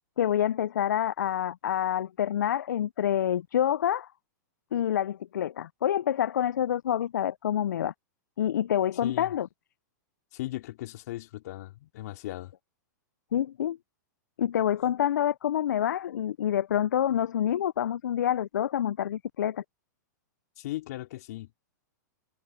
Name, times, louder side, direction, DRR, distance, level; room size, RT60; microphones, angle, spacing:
voice 1, 0.2-4.1 4.7-7.9 8.4-9.5 13.3-13.8 14.4-19.6, left 10 dB, 75° left, 0.5 m, -27 dB
voice 2, 9.0-9.3 10.3-12.5 20.6-21.5, left 16 dB, 60° left, 3.7 m, -37 dB
hypercardioid pair, 120°, 10 cm